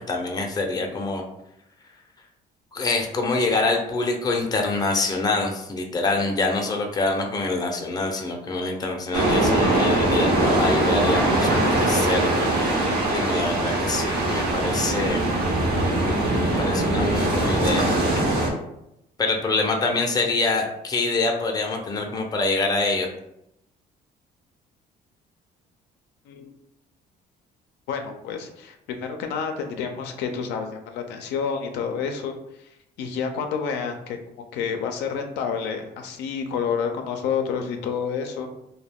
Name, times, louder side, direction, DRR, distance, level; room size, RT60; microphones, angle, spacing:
voice 1, 0.1-1.2 2.7-15.2 16.4-18.4 19.2-23.1, left 3 dB, 25° left, 2 dB, 0.5 m, -25 dB
sound 1, 9.1-18.5, right 1 dB, 75° right, 0.8 m, -22 dB
voice 2, 27.9-32.3 32.6-32.7 33.0-38.5, left 6 dB, 85° left, 5 dB, 0.4 m, -29 dB
2.3 x 2.1 x 3.4 m, 0.82 s
cardioid pair, 110°, 17 cm